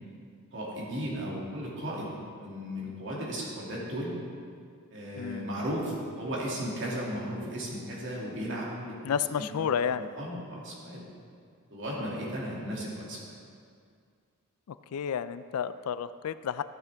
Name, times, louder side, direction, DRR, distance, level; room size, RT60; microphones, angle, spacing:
voice 1, 0.5-4.1 4.9-9.5 9.9-11.0 11.7-13.2, equal, 60° right, -5 dB, 2.4 m, -35 dB
voice 2, 5.2-5.5 9.0-10.1 14.7-16.6, left 7 dB, 80° left, 14 dB, 0.3 m, -31 dB
13.0 x 8.2 x 3.5 m, 2.2 s
head